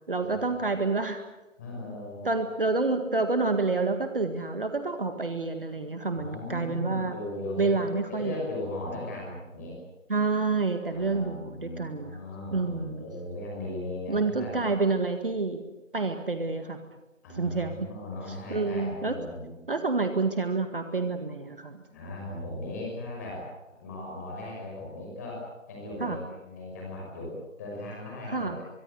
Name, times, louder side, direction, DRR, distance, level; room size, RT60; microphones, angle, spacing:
voice 1, 0.1-1.2 2.2-7.1 7.6-8.4 10.1-12.2 12.5-13.0 14.1-15.6 15.9-16.8 17.3-17.9 18.5-19.2 19.7-21.8 26.0-26.2 28.3-28.6, right 3 dB, 45° right, 7 dB, 1.9 m, -28 dB
voice 2, 1.6-2.3 6.2-9.8 10.9-14.7 17.2-19.5 21.9-23.5 23.8-28.6, left 1 dB, 15° left, -2 dB, 5.8 m, -37 dB
24.0 x 23.5 x 8.0 m, 1.1 s
figure-of-eight pair, 165°, 39 cm